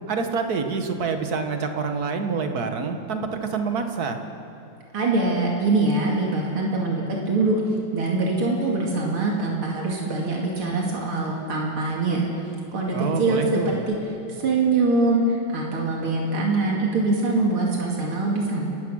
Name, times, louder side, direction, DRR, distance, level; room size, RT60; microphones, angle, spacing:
voice 1, 0.1-4.2 12.9-13.8, right 5 dB, 50° right, 5 dB, 1.8 m, -27 dB
voice 2, 4.9-7.6 7.9-12.3 12.7-14.0 14.3-18.7, right 3 dB, 90° right, -2 dB, 3.2 m, -23 dB
29.5 x 14.0 x 6.4 m, 2.7 s
omnidirectional pair, 2.3 m